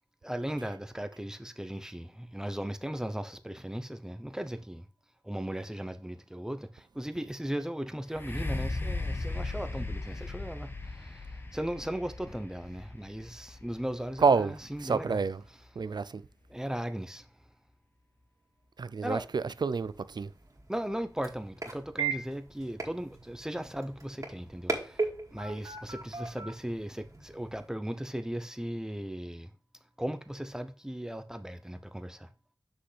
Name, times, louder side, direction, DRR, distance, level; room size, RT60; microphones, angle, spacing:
voice 1, 0.2-4.9 5.2-15.2 16.5-17.3 19.0-19.3 20.7-29.5 30.0-32.3, equal, 10° right, 0.8 m, -37 dB
sound 1, 8.1-15.9 16.5-16.6, left 2 dB, 30° left, 1.1 m, -38 dB
voice 2, 14.2-14.5 14.8-15.4 15.8-16.2 18.8-20.3, right 5 dB, 70° right, 0.4 m, -28 dB
sound 2, 19.8-27.7, right 4 dB, 45° right, 2.2 m, -38 dB
7.7 x 6.3 x 3.3 m
wide cardioid pair, 75°, 8 cm